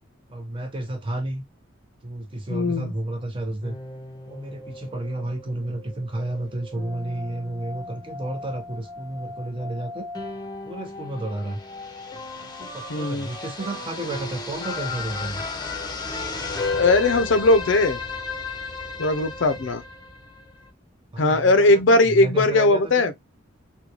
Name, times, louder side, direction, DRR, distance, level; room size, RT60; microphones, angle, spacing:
voice 1, 0.3-1.4 2.0-3.8 4.3-10.1 10.6-11.6 12.3-15.4 21.1-23.1, right 1 dB, 25° right, 0.8 m, -32 dB
voice 2, 2.5-2.9 12.9-13.3 16.7-18.0 19.0-19.8 21.2-23.1, left 2 dB, 70° left, 0.5 m, -19 dB
sound 1, 3.6-20.7, left 3 dB, 20° left, 0.7 m, -34 dB
3.7 x 2.2 x 2.9 m
head